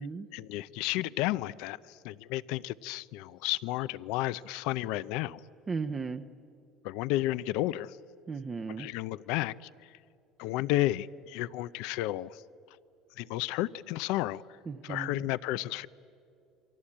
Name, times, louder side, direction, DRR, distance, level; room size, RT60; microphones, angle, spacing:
voice 1, 0.3-1.8 2.0-5.4 6.8-7.9 8.8-9.7 10.4-12.4 13.2-14.4 14.8-15.9, left 16 dB, 75° left, 0.6 m, -32 dB
voice 2, 5.7-6.2 8.3-8.9 14.7-15.3, right 4 dB, 20° right, 0.8 m, -36 dB
28.5 x 24.0 x 8.7 m
cardioid pair, 140°, 0 cm